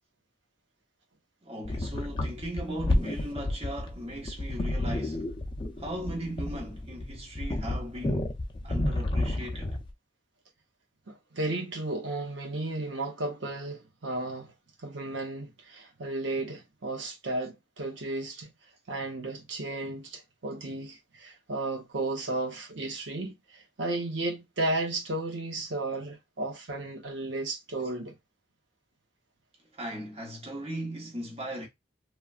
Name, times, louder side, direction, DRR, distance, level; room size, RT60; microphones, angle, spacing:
voice 1, 1.4-5.3 5.8-8.3 8.6-9.8 29.7-31.7, right 1 dB, 30° right, 0.9 m, -38 dB
sound 1, 1.6-9.9, left 1 dB, 25° left, 0.5 m, -31 dB
voice 2, 11.1-14.5 14.8-18.5 18.9-28.1, right 2 dB, 85° right, 0.9 m, -34 dB
3.1 x 2.3 x 2.4 m
head